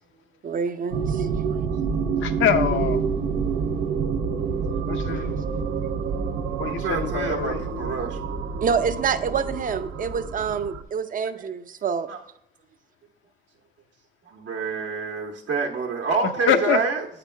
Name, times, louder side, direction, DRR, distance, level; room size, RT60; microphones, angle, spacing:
voice 1, 0.4-1.3 5.2-5.3 8.6-12.1, right 6 dB, 45° right, 10 dB, 0.6 m, -27 dB
sound 1, 0.9-10.8, right 5 dB, 85° right, 0.7 m, -27 dB
voice 2, 2.2-3.0 4.9-5.4 6.6-7.7 16.5-16.8, left 8 dB, 80° left, 8 dB, 0.7 m, -24 dB
voice 3, 6.6-8.5 12.1-12.2 14.3-17.1, right 5 dB, 70° right, -2 dB, 1.1 m, -28 dB
8.3 x 5.0 x 3.3 m, 0.73 s
cardioid pair, 90°, 20 cm